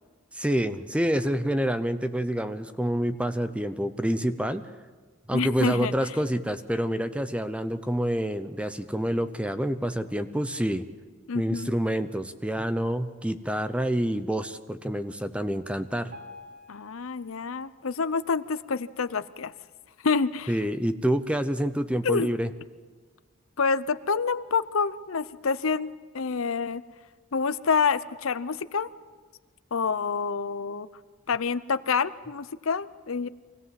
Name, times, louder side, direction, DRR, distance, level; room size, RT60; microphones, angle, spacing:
voice 1, 0.3-4.7 5.3-10.9 11.3-16.1 20.5-22.5, equal, 5° right, 11 dB, 0.7 m, -27 dB
voice 2, 5.3-5.9 11.3-11.7 16.7-19.5 20.0-20.5 22.0-22.3 23.6-26.8 27.3-28.9 29.7-30.9 31.3-33.3, left 5 dB, 80° left, 14 dB, 0.7 m, -27 dB
Piano, 16.1-19.2 19.7-19.9 20.2-20.3 21.0-21.1 21.7-21.8, left 2 dB, 55° right, 3.6 m, -50 dB
24.0 x 17.5 x 7.6 m, 1.4 s
head